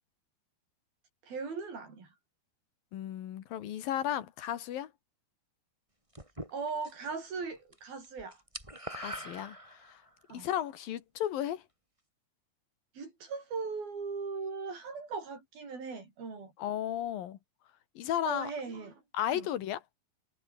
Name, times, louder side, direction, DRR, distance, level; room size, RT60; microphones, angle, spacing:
voice 1, 1.3-2.1 6.5-8.4 10.3-10.5 13.0-16.5 18.2-19.0 19.3-19.5, right 4 dB, 85° right, 8.4 m, -39 dB
voice 2, 2.9-4.9 8.9-10.0 10.3-11.6 16.6-17.4 18.0-18.5 19.1-19.8, left 11 dB, 75° left, 3.4 m, -34 dB
sound 1, 6.1-7.1 7.4-7.8 8.0-10.1, right 1 dB, 10° right, 5.4 m, -43 dB
omnidirectional pair, 4.1 m